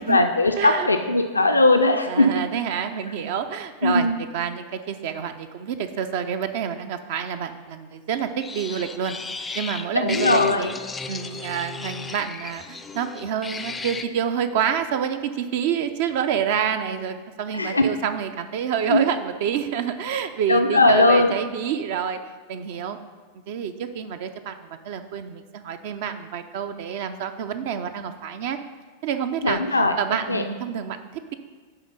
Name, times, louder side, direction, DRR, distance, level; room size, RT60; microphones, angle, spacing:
voice 1, 0.0-2.3 3.8-4.2 10.0-10.7 17.5-17.9 18.9-19.0 20.5-21.3 29.4-30.0 30.3-30.4, left 2 dB, 80° left, 6 dB, 0.4 m, -19 dB
voice 2, 0.6-0.9 2.1-9.2 9.5-10.7 11.1-22.2 22.5-23.0 23.5-28.6 29.0-31.3, right 8 dB, 50° right, 9 dB, 0.5 m, -28 dB
sound 1, 8.4-14.0, left 4 dB, 15° left, 0.4 m, -34 dB
10.0 x 3.7 x 5.3 m, 1.5 s
figure-of-eight pair, 90°, 0 cm